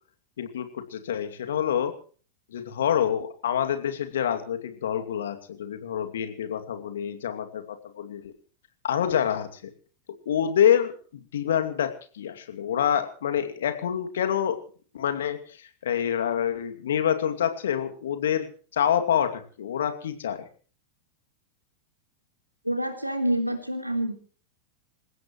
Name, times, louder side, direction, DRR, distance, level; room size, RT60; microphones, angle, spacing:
voice 1, 0.4-1.9 2.5-8.3 8.8-9.7 10.3-14.6 14.9-18.5 18.7-20.4, left 9 dB, 60° left, 7 dB, 2.5 m, -27 dB
voice 2, 22.6-24.1, right 1 dB, 90° right, 5 dB, 3.6 m, -27 dB
27.5 x 16.0 x 3.1 m, 0.41 s
figure-of-eight pair, 90°, 0 cm